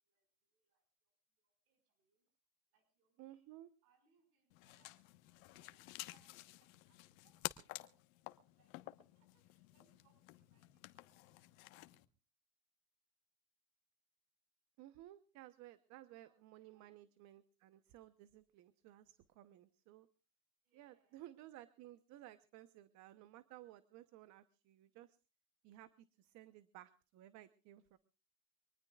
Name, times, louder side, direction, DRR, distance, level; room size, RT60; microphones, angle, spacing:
voice 1, 0.0-0.9 1.4-2.3 2.7-3.5 3.8-4.9 5.6-7.5 7.8-8.7 9.0-11.0 15.9-17.0 20.6-21.3, right 5 dB, 85° right, 8 dB, 5.6 m, -79 dB
voice 2, 3.2-3.7 14.8-20.1 20.7-25.2 25.6-28.0, right 14 dB, 40° right, 13 dB, 0.9 m, -57 dB
sound 1, 4.5-12.1, left 19 dB, 70° left, 1.3 m, -51 dB
24.5 x 19.5 x 2.4 m, 0.34 s
supercardioid pair, 155°, 42 cm